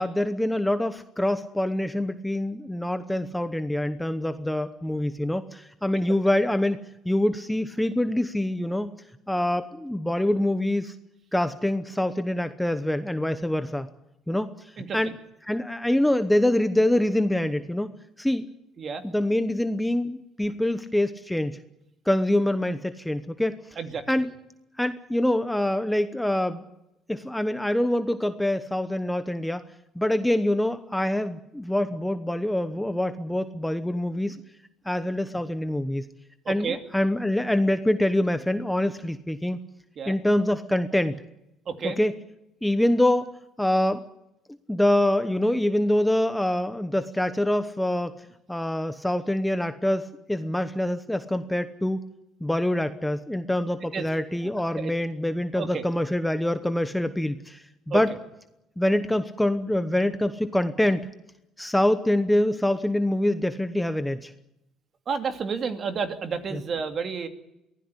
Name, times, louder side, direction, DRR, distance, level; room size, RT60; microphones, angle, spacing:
voice 1, 0.0-6.8 7.0-8.9 9.3-10.9 11.3-13.9 14.3-15.2 15.4-17.9 18.2-18.5 19.0-21.6 22.1-23.6 24.1-24.3 24.8-26.6 27.1-29.6 29.9-34.4 34.8-36.1 36.5-39.6 40.1-41.2 41.8-42.1 42.6-44.1 44.7-52.0 52.4-58.1 58.8-61.1 61.6-64.3 66.5-66.6, left 1 dB, 5° left, 10 dB, 1.0 m, -25 dB
voice 2, 36.4-36.8 40.0-40.2 41.7-42.0 53.9-54.1 54.4-54.9 55.6-55.8 57.9-58.0 65.1-67.3, right 6 dB, 40° right, 7 dB, 2.6 m, -31 dB
23.5 x 16.0 x 9.8 m, 0.87 s
cardioid pair, 135°, 0 cm